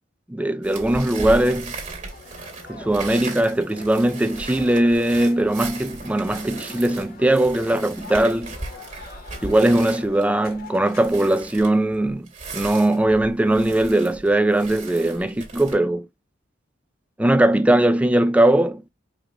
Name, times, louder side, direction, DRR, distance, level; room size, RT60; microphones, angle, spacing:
voice 1, 0.3-1.8 2.7-8.6 9.4-12.3 12.5-16.1 17.2-18.8, right 1 dB, 5° right, 0.3 m, -20 dB
sound 1, 0.6-15.7, right 3 dB, 40° right, 2.0 m, -37 dB
sound 2, 2.1-11.2, left 3 dB, 50° left, 1.3 m, -44 dB
5.0 x 2.5 x 2.9 m
head